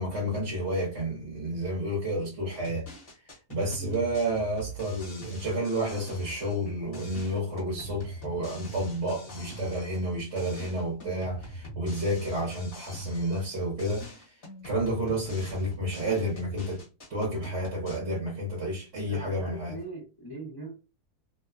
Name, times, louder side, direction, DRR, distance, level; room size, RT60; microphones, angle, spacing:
voice 1, 0.0-2.9 3.5-14.1 14.6-16.8 17.1-19.8, right 1 dB, 50° right, 1.1 m, -30 dB
sound 1, 2.5-6.7 6.9-10.1 10.4-13.5 13.8-18.0, equal, 40° left, 1.3 m, -42 dB
voice 2, 19.1-20.7, right 2 dB, 20° left, 0.8 m, -41 dB
2.8 x 2.1 x 2.3 m
omnidirectional pair, 1.6 m